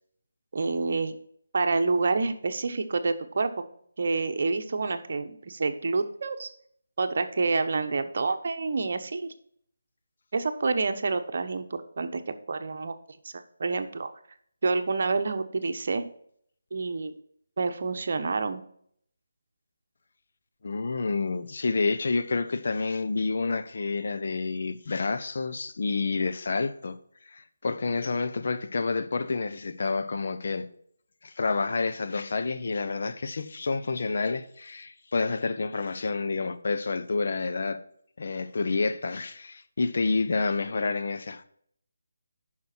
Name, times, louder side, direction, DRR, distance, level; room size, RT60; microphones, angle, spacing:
voice 1, 0.5-1.1 1.5-3.6 4.0-6.5 7.0-9.3 10.3-13.0 13.2-14.1 14.6-16.0 16.7-17.1 17.6-18.6, right 3 dB, 55° right, 1.1 m, -28 dB
voice 2, 20.6-27.0 27.3-30.7 31.2-37.8 38.2-41.4, left 4 dB, 55° left, 0.9 m, -29 dB
9.5 x 6.1 x 4.4 m
figure-of-eight pair, 160°, 0 cm